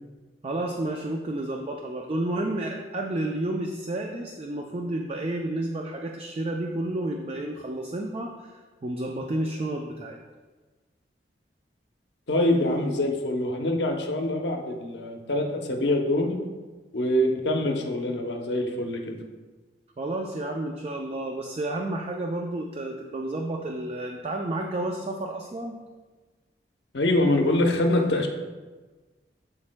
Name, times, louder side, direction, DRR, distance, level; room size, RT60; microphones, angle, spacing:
voice 1, 0.4-8.5 8.8-10.2 20.0-25.8, right 1 dB, 35° right, 2 dB, 0.4 m, -31 dB
voice 2, 12.3-16.4 16.9-19.2 26.9-28.3, left 1 dB, 80° left, 3 dB, 0.8 m, -24 dB
11.5 x 4.2 x 2.2 m, 1.3 s
head